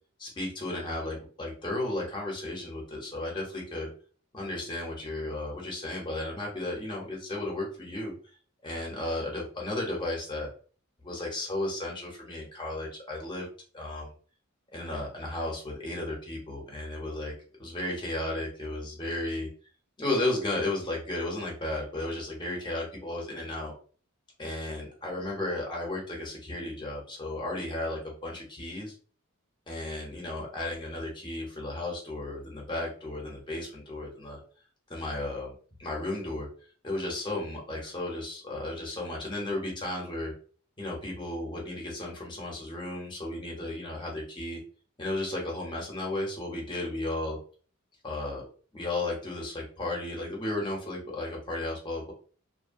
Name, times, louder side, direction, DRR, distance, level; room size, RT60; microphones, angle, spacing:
voice 1, 0.2-3.9 4.3-8.1 8.6-10.5 11.0-13.5 13.7-14.1 14.7-17.3 17.6-19.5 20.0-23.7 24.4-28.9 29.7-34.4 34.9-35.5 35.8-36.5 36.8-40.3 40.8-44.6 45.0-47.4 48.0-48.4 48.7-52.1, left 2 dB, 20° left, -2 dB, 0.8 m, -34 dB
2.7 x 2.1 x 2.6 m, 0.41 s
head